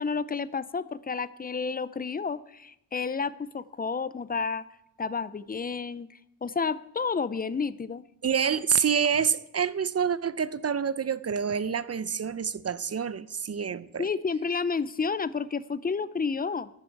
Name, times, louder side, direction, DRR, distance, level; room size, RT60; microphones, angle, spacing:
voice 1, 0.0-4.6 5.0-6.1 6.4-8.0 14.0-16.7, left 5 dB, 25° left, 0.5 m, -30 dB
voice 2, 8.2-14.1, right 7 dB, 40° right, 0.6 m, -27 dB
13.5 x 11.5 x 4.6 m
wide cardioid pair, 100°, 37 cm